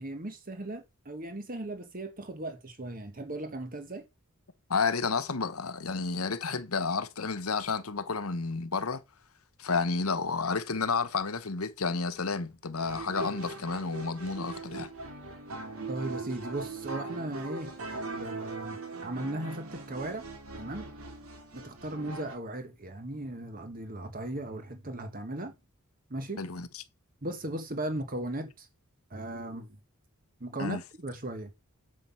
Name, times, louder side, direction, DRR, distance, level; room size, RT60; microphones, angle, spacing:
voice 1, 0.0-4.1 15.9-20.3 20.6-20.9 21.5-25.5 26.1-26.5 27.2-28.7 29.1-29.8 30.4-31.5, right 1 dB, 40° right, 1.3 m, -37 dB
voice 2, 4.7-9.0 9.6-14.9 26.4-26.7 30.6-30.8, left 4 dB, 90° left, 1.1 m, -31 dB
sound 1, 12.8-22.4, right 3 dB, 85° right, 2.5 m, -40 dB
7.7 x 7.4 x 5.7 m
head